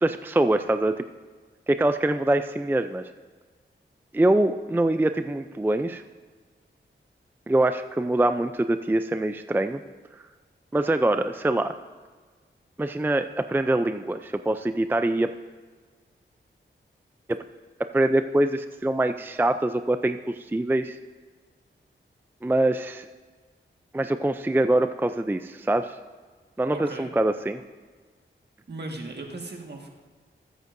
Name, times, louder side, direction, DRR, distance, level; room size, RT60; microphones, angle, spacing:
voice 1, 0.0-1.1 1.7-3.1 4.1-6.0 7.5-9.8 10.1-10.2 10.7-11.8 12.8-15.3 17.3-17.4 17.9-21.0 22.4-23.1 23.9-26.0 26.6-27.6, right 1 dB, 10° right, 9 dB, 0.4 m, -24 dB
voice 2, 26.7-27.1 28.7-29.9, right 2 dB, 55° right, 1 dB, 1.7 m, -37 dB
21.5 x 8.1 x 2.6 m, 1.5 s
cardioid pair, 55°, 20 cm